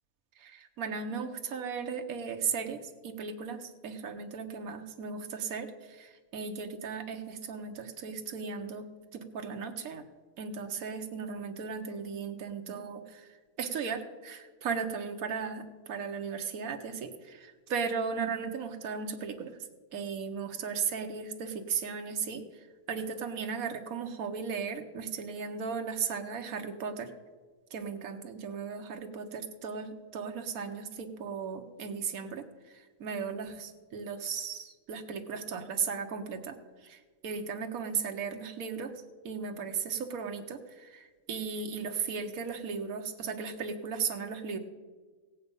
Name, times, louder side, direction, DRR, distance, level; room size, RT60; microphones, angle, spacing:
voice 1, 0.4-8.9 9.1-10.0 10.4-13.3 13.6-19.6 19.9-27.1 27.7-36.6 36.8-38.9 39.2-44.6, right 6 dB, 80° right, 5 dB, 1.4 m, -36 dB
16.5 x 8.5 x 5.3 m, 1.4 s
omnidirectional pair, 1.5 m